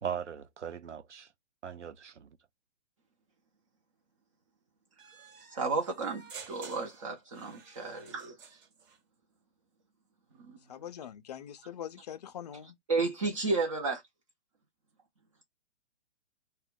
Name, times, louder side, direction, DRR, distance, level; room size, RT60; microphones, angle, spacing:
voice 1, 0.0-1.3 1.6-2.3, right 8 dB, 85° right, 0.5 m, -39 dB
sound 1, 5.0-9.0, right 6 dB, 45° right, 1.2 m, -51 dB
voice 2, 5.5-7.9 10.4-10.6 12.9-14.0, right 3 dB, 30° right, 0.5 m, -32 dB
voice 3, 10.7-12.8, left 10 dB, 35° left, 0.4 m, -43 dB
2.2 x 2.1 x 3.5 m
figure-of-eight pair, 120°, 35 cm